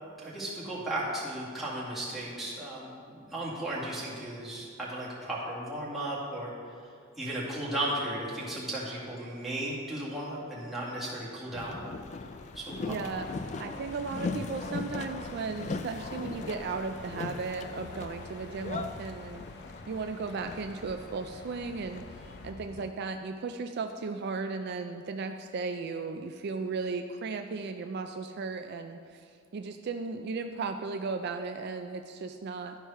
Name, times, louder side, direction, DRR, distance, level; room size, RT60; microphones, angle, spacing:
voice 1, 0.2-6.5 7.2-11.8 12.5-13.0, right 1 dB, ahead, -8 dB, 2.1 m, -35 dB
Boat Water vehicle, 11.5-22.9, left 4 dB, 35° left, 0.3 m, -40 dB
sound 1, 12.1-22.5, left 2 dB, 55° left, 0.8 m, -49 dB
voice 2, 12.9-13.3 13.6-19.4 19.9-32.8, right 4 dB, 55° right, 6 dB, 0.4 m, -36 dB
12.0 x 4.6 x 5.5 m, 2.2 s
head